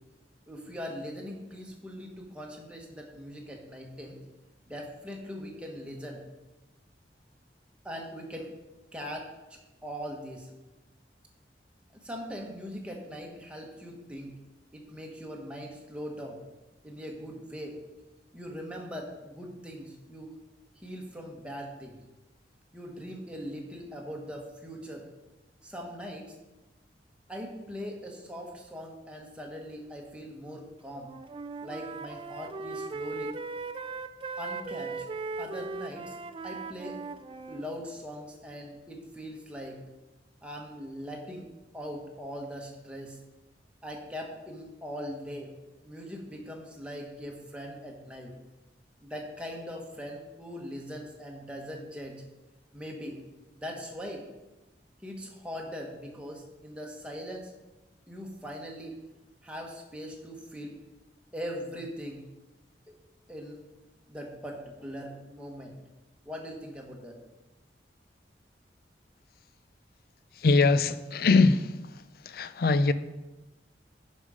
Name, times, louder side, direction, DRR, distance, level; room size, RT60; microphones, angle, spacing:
voice 1, 0.5-4.2 4.7-6.2 7.8-8.5 8.9-10.5 11.9-14.4 14.7-16.4 16.8-17.8 18.3-20.3 20.8-22.0 22.7-25.0 25.6-26.3 27.3-31.1 31.6-33.4 34.4-35.0 35.4-36.1 36.4-37.0 37.5-39.8 40.4-41.5 41.7-43.2 43.8-45.5 45.8-48.3 49.0-52.2 52.7-53.2 53.5-54.2 55.0-57.5 58.1-58.9 59.4-60.8 61.3-62.2 62.9-63.0 63.3-63.6 64.1-65.7 66.2-67.2, equal, 5° right, 1.4 m, -41 dB
Wind instrument woodwind instrument, 30.9-37.7, right 3 dB, 30° right, 0.3 m, -38 dB
voice 2, 70.4-71.7 72.3-72.9, left 3 dB, 60° left, 0.4 m, -22 dB
10.5 x 5.3 x 5.0 m
head